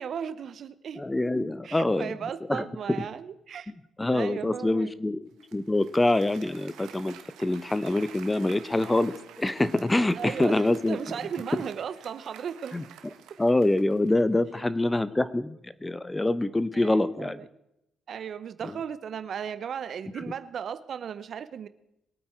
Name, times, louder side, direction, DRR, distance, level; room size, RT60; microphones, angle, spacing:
voice 1, 0.0-1.0 1.6-3.7 4.1-4.9 10.1-12.7 16.7-17.5 18.1-21.7, right 8 dB, 60° right, 14 dB, 0.9 m, -36 dB
voice 2, 1.0-2.1 2.5-2.7 3.0-3.1 4.0-11.0 12.7-12.9 13.4-17.4 18.6-18.8, left 2 dB, 15° left, 15 dB, 0.8 m, -25 dB
Applause, 5.4-14.3, right 9 dB, 90° right, 1.5 m, -49 dB
22.5 x 8.8 x 4.5 m, 0.83 s
cardioid pair, 90°, 0 cm